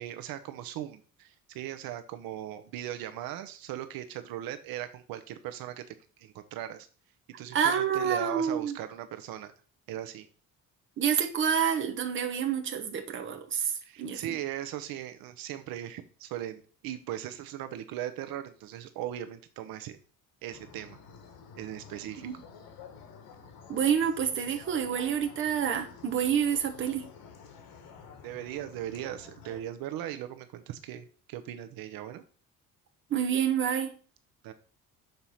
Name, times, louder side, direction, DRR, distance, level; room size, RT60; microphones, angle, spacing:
voice 1, 0.0-6.9 7.4-9.5 9.9-10.3 13.8-20.0 20.4-21.0 21.5-22.3 28.2-32.2 34.4-34.5, right 12 dB, 80° right, 0.8 m, -38 dB
voice 2, 7.5-8.8 11.0-13.7 14.0-14.3 22.2-22.4 23.7-27.1 33.1-33.9, right 8 dB, 35° right, 1.1 m, -28 dB
sound 1, 20.5-29.6, left 6 dB, 85° left, 1.8 m, -51 dB
6.7 x 4.5 x 5.6 m
cardioid pair, 175°, 34 cm